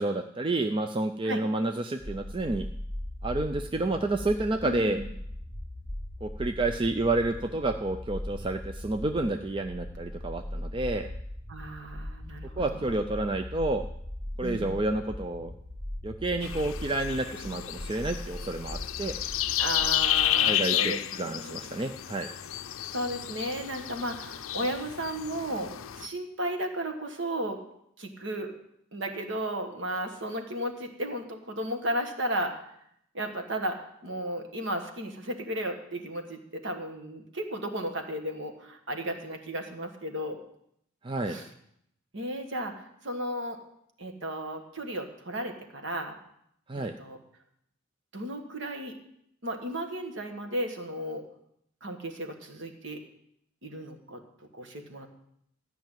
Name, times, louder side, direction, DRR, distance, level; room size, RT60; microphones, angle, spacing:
voice 1, 0.0-2.7 3.2-5.0 6.2-11.1 12.6-13.8 14.4-15.5 16.0-19.1 20.4-22.3 41.0-41.4 46.7-46.9, right 2 dB, 25° right, 7 dB, 0.4 m, -29 dB
sound 1, 2.0-20.4, left 1 dB, 40° right, 2.0 m, -39 dB
voice 2, 4.6-5.1 11.5-13.0 14.4-14.8 19.6-21.6 22.9-27.6 28.0-28.5 28.9-32.6 33.1-40.4 41.3-41.5 42.1-43.6 44.0-46.1 46.8-47.2 48.1-49.0 49.4-51.2 51.8-53.0 53.6-54.2 54.5-55.1, right 1 dB, 60° right, 5 dB, 1.6 m, -34 dB
sound 2, 16.4-26.1, left 13 dB, 75° left, 0.5 m, -31 dB
13.0 x 5.7 x 9.1 m, 0.74 s
head